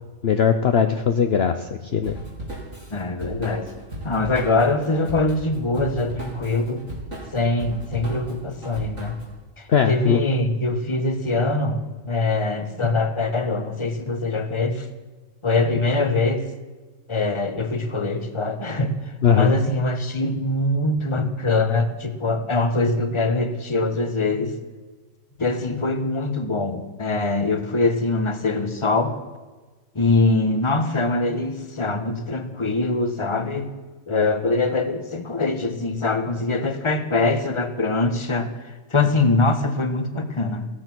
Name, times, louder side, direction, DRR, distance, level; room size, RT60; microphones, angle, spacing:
voice 1, 0.2-2.2 9.7-10.2 19.2-19.5, left 7 dB, 50° left, 7 dB, 1.0 m, -19 dB
Drum kit / Drum, 2.0-9.3, right 1 dB, 70° right, 4.8 m, -36 dB
voice 2, 2.9-3.7 4.0-6.8 7.3-9.2 9.6-11.8 12.1-14.9 15.4-16.4 17.1-18.9 19.3-24.6 25.4-29.2 29.9-33.7 34.1-38.5 38.9-40.7, left 2 dB, 20° left, 9 dB, 1.3 m, -23 dB
16.5 x 14.0 x 6.1 m, 1.3 s
omnidirectional pair, 1.4 m